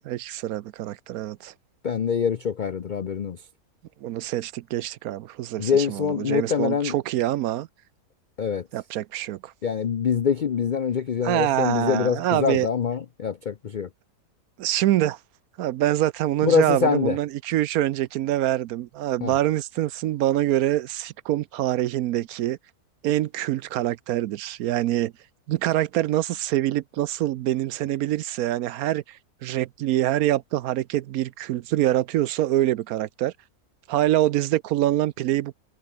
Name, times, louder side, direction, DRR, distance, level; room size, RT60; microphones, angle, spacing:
voice 1, 0.0-1.5 4.0-7.7 8.7-9.5 11.2-12.7 14.6-15.2 15.6-22.6 23.0-25.1 25.5-33.3 33.9-35.5, right 13 dB, 70° right, 1.0 m, -25 dB
voice 2, 1.8-3.4 5.6-6.9 8.4-8.6 9.6-13.9 16.4-17.2 19.2-19.4, left 7 dB, 75° left, 0.4 m, -24 dB
omnidirectional pair, 1.7 m